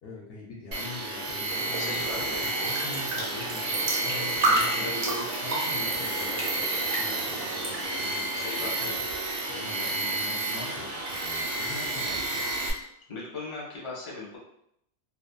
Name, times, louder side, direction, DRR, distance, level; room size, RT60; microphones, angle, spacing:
voice 1, 0.0-5.0 5.4-9.0 9.5-12.5, left 3 dB, 65° left, -4 dB, 0.7 m, -43 dB
Tools, 0.7-12.7, right 2 dB, 85° right, 0.9 m, -31 dB
sound 1, 1.5-7.9, right 2 dB, 45° right, 0.7 m, -32 dB
voice 2, 1.8-2.4 4.8-5.3 8.3-8.9 13.1-14.4, left 2 dB, 30° left, -4 dB, 0.6 m, -37 dB
2.6 x 2.1 x 2.2 m, 0.74 s
omnidirectional pair, 1.2 m